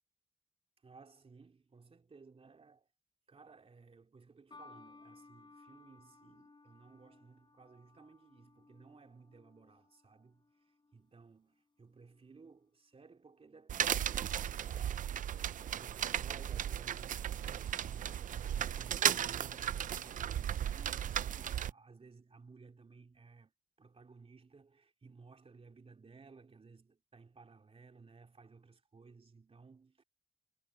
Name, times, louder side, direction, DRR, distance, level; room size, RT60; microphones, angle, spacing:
voice 1, 0.8-2.9 3.3-15.1 15.6-23.5 23.8-30.0, right 4 dB, 45° right, 2.9 m, -58 dB
sound 1, 4.5-11.0 11.9-12.3, left 3 dB, 35° left, 7.3 m, -60 dB
sound 2, 13.7-21.7, right 10 dB, 75° right, 0.5 m, -35 dB
cardioid pair, 50°, 14 cm